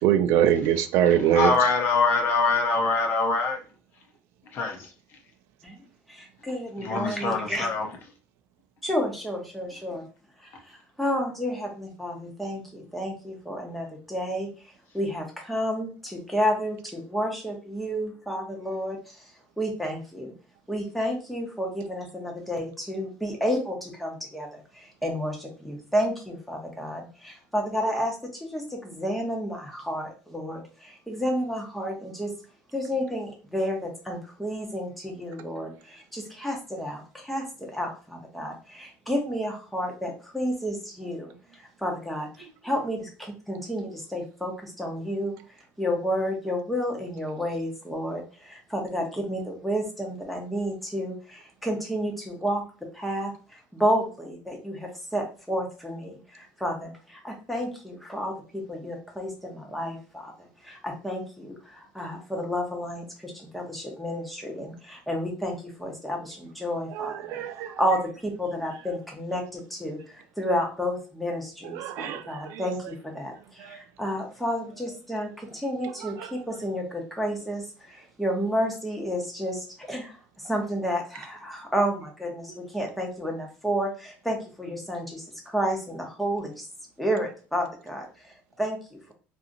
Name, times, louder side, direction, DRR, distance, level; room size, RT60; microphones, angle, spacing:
voice 1, 0.0-1.8 66.9-67.8 71.6-72.6 73.6-73.8 76.0-76.3, right 10 dB, 65° right, 0.3 m, -24 dB
voice 2, 1.3-3.6 4.5-4.9 6.8-7.9, left 4 dB, 50° left, 0.7 m, -24 dB
voice 3, 6.1-7.7 8.8-10.0 10.4-14.5 14.9-19.3 19.6-20.3 20.7-32.3 32.7-45.4 45.8-52.7 52.9-80.2 80.4-86.7 87.0-89.1, equal, ahead, 0.8 m, -31 dB
2.7 x 2.5 x 2.5 m
cardioid pair, 145°, 5 cm